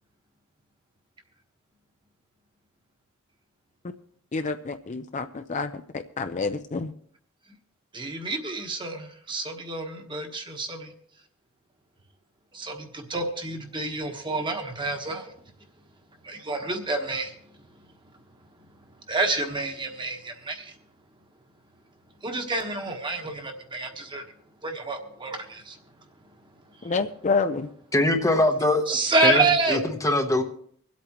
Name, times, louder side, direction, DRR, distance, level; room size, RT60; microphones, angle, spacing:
voice 1, 4.3-6.9 26.8-27.7, left 4 dB, 35° left, 8 dB, 0.5 m, -28 dB
voice 2, 7.9-10.9 12.5-15.2 16.2-17.3 19.1-20.6 22.2-24.2 24.6-25.8 28.9-29.8, right 2 dB, 25° right, 4 dB, 1.3 m, -28 dB
voice 3, 27.9-28.8 29.2-29.8 30.0-30.4, left 1 dB, 15° left, 5 dB, 0.9 m, -22 dB
25.0 x 8.4 x 3.0 m, 0.64 s
head